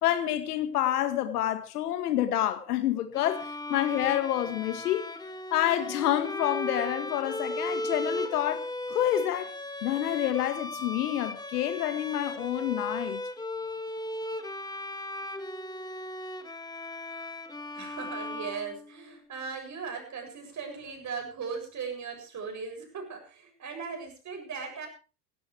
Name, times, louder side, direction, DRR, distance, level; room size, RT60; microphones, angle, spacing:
voice 1, 0.0-5.1 5.5-9.5 9.8-13.2, left 12 dB, 70° left, 1.9 m, -28 dB
Bowed string instrument, 3.1-19.2, left 1 dB, 10° left, 1.8 m, -37 dB
voice 2, 17.7-24.9, right 5 dB, 35° right, 7.6 m, -38 dB
18.0 x 16.5 x 3.4 m
hypercardioid pair, 75°, 47 cm